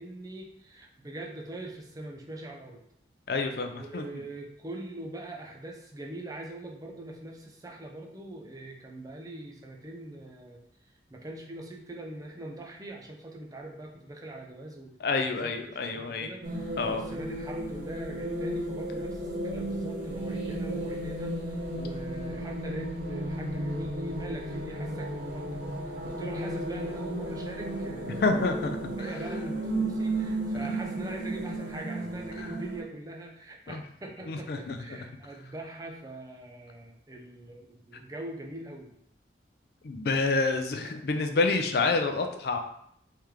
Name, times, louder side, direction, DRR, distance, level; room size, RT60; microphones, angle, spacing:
voice 1, 0.0-2.8 3.7-10.6 11.1-28.7 29.0-38.9, right 2 dB, 20° right, 1 dB, 0.5 m, -42 dB
voice 2, 3.3-4.0 15.0-16.3 16.8-17.0 28.2-28.8 30.5-30.7 32.4-32.5 33.7-33.8 34.3-34.8 39.8-42.6, left 3 dB, 55° left, 6 dB, 0.4 m, -28 dB
sound 1, 16.4-32.8, right 1 dB, 80° right, 1.0 m, -34 dB
3.2 x 3.0 x 3.6 m, 0.71 s
head